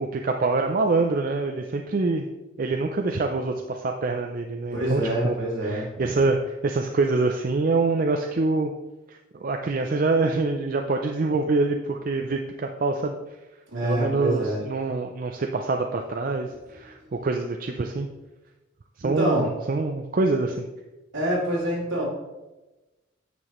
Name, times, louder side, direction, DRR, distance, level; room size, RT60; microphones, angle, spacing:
voice 1, 0.0-2.3 2.6-5.4 5.6-8.7 9.1-13.2 13.8-18.1 19.0-20.6, right 3 dB, 45° right, 4 dB, 0.4 m, -25 dB
voice 2, 4.7-5.9 13.7-14.6 19.0-19.5 21.1-22.0, right 1 dB, 70° right, -4 dB, 2.7 m, -26 dB
9.2 x 5.8 x 3.1 m, 1.1 s
head